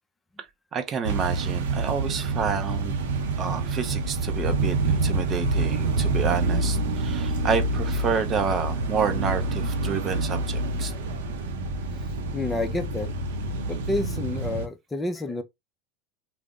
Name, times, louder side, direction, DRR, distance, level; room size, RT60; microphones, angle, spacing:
voice 1, 0.7-3.0 3.4-10.9, right 6 dB, 35° right, 0.5 m, -29 dB
sound 1, 1.0-14.7, right 2 dB, 85° right, 0.6 m, -27 dB
voice 2, 12.3-13.1 13.6-15.4, left 2 dB, 15° left, 0.5 m, -29 dB
2.4 x 2.0 x 3.5 m
supercardioid pair, 120°, 0 cm